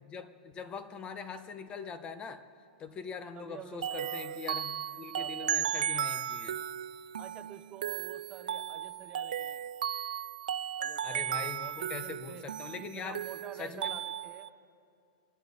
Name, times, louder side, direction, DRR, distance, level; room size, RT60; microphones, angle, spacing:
voice 1, 0.0-2.5 2.8-6.6 11.0-13.2 13.6-14.0, left 5 dB, 25° left, 10 dB, 1.0 m, -42 dB
voice 2, 3.3-4.4 5.1-5.7 6.0-6.3 7.2-9.7 10.8-12.5 12.8-14.5, right 9 dB, 25° right, 9 dB, 0.9 m, -48 dB
sound 1, 3.8-14.5, right 9 dB, 85° right, 0.4 m, -35 dB
28.0 x 12.0 x 4.0 m, 2.5 s
hypercardioid pair, 135°, 4 cm